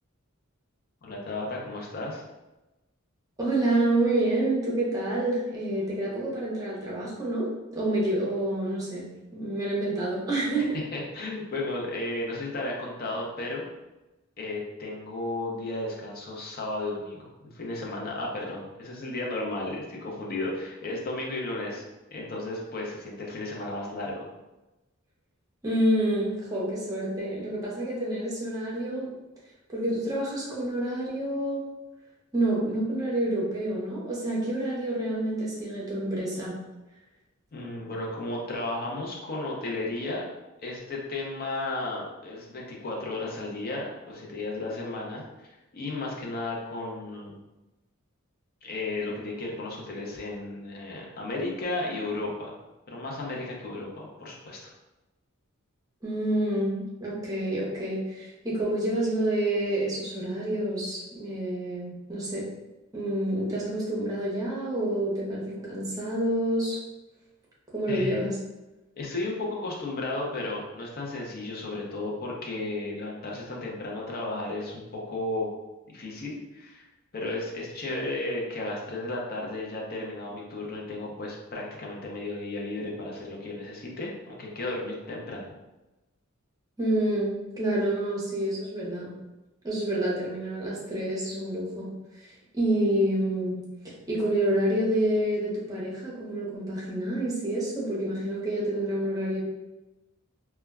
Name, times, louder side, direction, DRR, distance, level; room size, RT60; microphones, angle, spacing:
voice 1, 1.0-2.2 10.9-13.6 14.4-21.8 22.1-24.1 37.5-40.2 40.6-47.4 48.6-52.5 52.9-54.6 67.9-68.2 69.0-75.5 75.9-76.9 77.1-85.5, left 2 dB, 45° left, -2 dB, 0.6 m, -34 dB
voice 2, 3.4-10.7 25.6-29.1 29.7-31.6 32.3-36.6 56.0-62.5 62.9-66.8 67.7-68.4 86.8-89.1 89.6-91.9 92.5-93.6 94.1-99.4, right 1 dB, 15° right, -6 dB, 0.7 m, -28 dB
2.2 x 2.1 x 3.4 m, 1.0 s
head